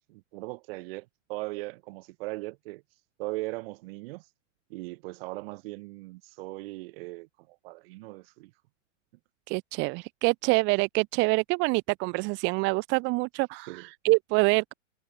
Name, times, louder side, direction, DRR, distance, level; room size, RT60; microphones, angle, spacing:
voice 1, 0.1-2.8 3.2-4.3 4.7-8.5 13.7-13.9, right 22 dB, 50° right, 3.6 m, -39 dB
voice 2, 9.5-14.7, right 27 dB, 30° right, 0.8 m, -26 dB
hypercardioid pair, 125°, 38 cm